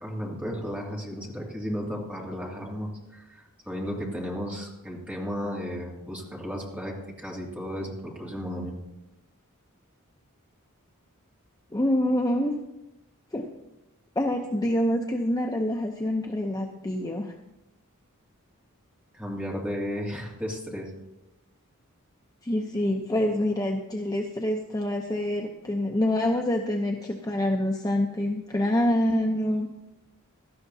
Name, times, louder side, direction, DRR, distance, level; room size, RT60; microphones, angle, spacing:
voice 1, 0.0-8.7 19.1-20.9, equal, 5° right, -3 dB, 2.4 m, -34 dB
voice 2, 11.7-12.6 13.3-13.5 14.2-17.3 22.4-29.7, left 1 dB, 15° left, 2 dB, 0.7 m, -26 dB
17.0 x 12.5 x 2.8 m, 0.94 s
head